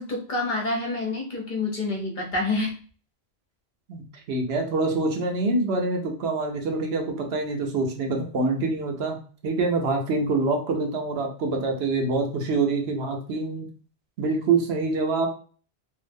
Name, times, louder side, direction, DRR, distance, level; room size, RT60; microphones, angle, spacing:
voice 1, 0.0-2.7, left 2 dB, 50° left, -1 dB, 0.9 m, -27 dB
voice 2, 3.9-9.2 9.4-13.7 14.2-15.3, right 3 dB, 80° right, 2 dB, 1.0 m, -25 dB
2.8 x 2.0 x 3.4 m, 0.41 s
omnidirectional pair, 1.1 m